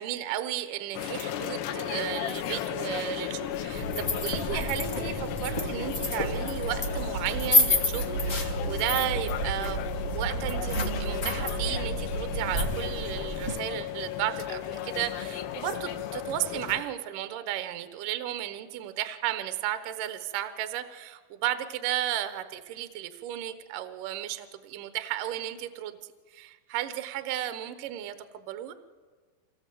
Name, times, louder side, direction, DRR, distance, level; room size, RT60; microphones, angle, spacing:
voice 1, 0.0-28.7, right 12 dB, 70° right, 10 dB, 2.3 m, -34 dB
sound 1, 0.9-16.8, left 11 dB, 80° left, 3.2 m, -35 dB
sound 2, 3.5-13.6, equal, 45° left, 0.9 m, -30 dB
25.0 x 18.5 x 7.7 m, 1.5 s
omnidirectional pair, 4.8 m